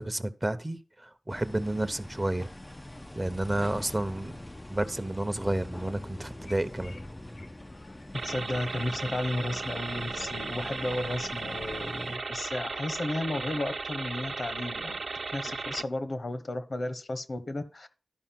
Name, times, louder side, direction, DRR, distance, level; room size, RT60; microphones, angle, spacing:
voice 1, 0.0-2.5 3.1-4.4 4.7-7.0, right 1 dB, 25° right, 0.8 m, -31 dB
sound 1, 1.3-12.2, left 1 dB, 20° left, 0.4 m, -44 dB
Telephone, 6.4-8.8 9.6-12.0, left 3 dB, 90° left, 1.6 m, -54 dB
sound 2, 8.1-15.8, right 4 dB, 75° right, 0.5 m, -36 dB
voice 2, 8.2-15.0 15.3-17.9, left 2 dB, 65° left, 1.2 m, -33 dB
12.5 x 5.0 x 5.9 m
wide cardioid pair, 70°, 0 cm